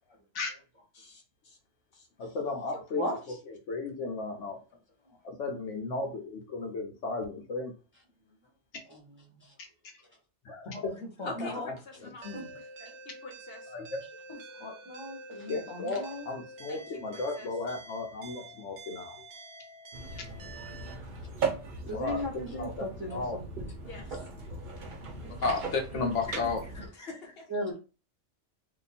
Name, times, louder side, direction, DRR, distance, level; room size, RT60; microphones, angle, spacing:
voice 1, 0.9-1.6 1.9-2.4 2.7-2.8 11.3-12.3 13.2-13.7 16.7-16.8 17.1-17.5 23.8-24.3 26.9-27.5, left 3 dB, 60° left, 1.0 m, -46 dB
voice 2, 2.2-3.1 3.5-4.6 5.2-7.7 10.4-10.9 11.2-11.5 12.2-12.5 13.7-14.0 15.5-19.2 21.9-22.2 22.5-23.4 25.4-26.6, left 3 dB, 80° left, 1.1 m, -34 dB
voice 3, 10.6-11.7 12.3-12.9 14.3-16.3 16.7-16.8 26.3-26.4 26.7-26.9, left 1 dB, 25° left, 1.0 m, -43 dB
sound 1, 12.2-20.9, right 2 dB, 75° right, 1.0 m, -48 dB
sound 2, 19.9-26.9, right 4 dB, 50° right, 0.8 m, -38 dB
voice 4, 21.9-23.7 25.2-25.6 27.5-27.8, left 1 dB, 10° right, 0.8 m, -35 dB
2.8 x 2.5 x 4.0 m
omnidirectional pair, 1.2 m